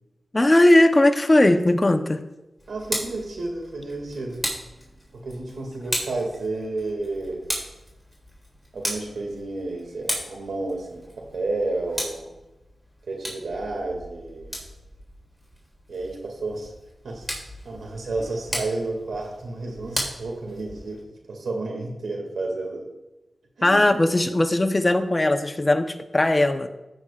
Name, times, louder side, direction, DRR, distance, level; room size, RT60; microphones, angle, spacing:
voice 1, 0.3-2.2 23.6-26.7, left 1 dB, 25° left, 7 dB, 0.8 m, -18 dB
Tick, 2.6-21.0, equal, 5° right, 4.0 m, -36 dB
voice 2, 2.7-4.5 5.1-7.5 8.7-12.3 13.1-14.6 15.9-16.7 17.0-17.3 17.6-21.0 21.3-22.9 23.6-23.9, right 2 dB, 80° right, 1 dB, 2.2 m, -31 dB
14.0 x 9.0 x 2.4 m, 0.99 s
wide cardioid pair, 70°, 0 cm